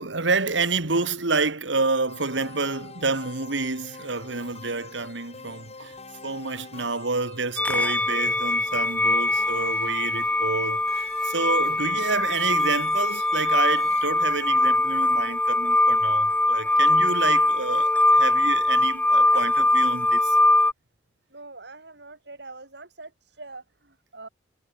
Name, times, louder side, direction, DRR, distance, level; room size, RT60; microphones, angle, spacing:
voice 1, 0.0-6.0 6.2-20.4, right 3 dB, 90° right, 2.3 m, -28 dB
sound 1, 2.1-14.1, left 5 dB, 35° left, 2.2 m, -46 dB
sound 2, 7.6-20.7, left 2 dB, 10° left, 0.9 m, -22 dB
voice 2, 21.3-24.3, right 3 dB, 65° right, 7.7 m, -44 dB
head